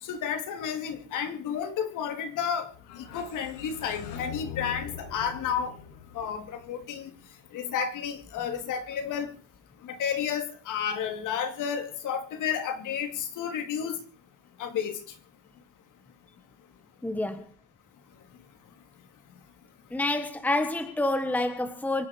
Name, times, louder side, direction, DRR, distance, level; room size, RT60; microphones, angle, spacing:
voice 1, 0.0-2.7 3.0-5.7 6.1-7.1 7.5-9.3 9.8-14.0 14.6-15.0, left 8 dB, 50° left, 7 dB, 3.7 m, -31 dB
sound 1, 2.7-7.6, left 6 dB, 85° left, 7.4 m, -43 dB
voice 2, 17.0-17.4 19.9-22.1, left 2 dB, 5° left, 9 dB, 1.3 m, -28 dB
25.5 x 11.0 x 4.9 m, 0.40 s
cardioid pair, 155°, 39 cm